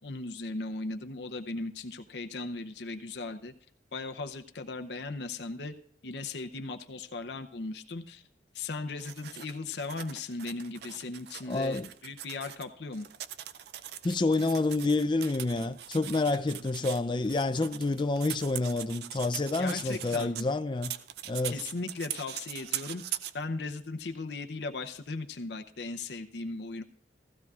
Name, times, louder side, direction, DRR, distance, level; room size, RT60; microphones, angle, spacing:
voice 1, 0.0-3.5 3.9-5.7 6.0-8.2 8.5-13.1 19.6-20.5 21.4-23.0 23.3-26.8, left 3 dB, 70° left, 0.7 m, -37 dB
sound 1, 9.0-12.6 12.9-20.5 20.8-23.3, right 11 dB, 60° right, 0.4 m, -41 dB
voice 2, 11.5-11.9 14.0-20.9 21.3-21.6, left 3 dB, 25° left, 0.4 m, -28 dB
15.5 x 15.0 x 2.4 m
head